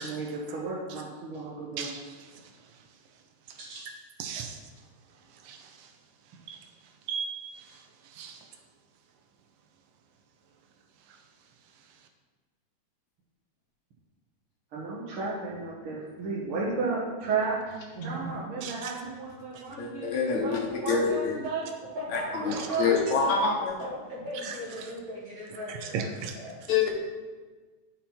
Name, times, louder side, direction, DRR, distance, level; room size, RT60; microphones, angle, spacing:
voice 1, 0.0-1.9 3.6-3.9 14.7-17.6 18.0-21.7 22.4-23.4, right 4 dB, 55° right, 1.8 m, -33 dB
voice 2, 1.8-3.6 4.2-6.0 6.2-8.6 11.0-12.1 18.6-19.0 19.5-19.7 22.5-22.7 24.4-24.9 25.7-26.8, right 6 dB, 75° right, 2.0 m, -40 dB
voice 3, 17.9-18.4 21.9-22.8 23.8-26.1 26.3-26.5, equal, 35° right, 2.0 m, -38 dB
voice 4, 19.8-20.6 20.9-21.3 22.1-22.5 22.8-23.8 26.7-26.9, left 5 dB, 70° left, 2.5 m, -26 dB
9.7 x 5.7 x 4.4 m
omnidirectional pair, 3.5 m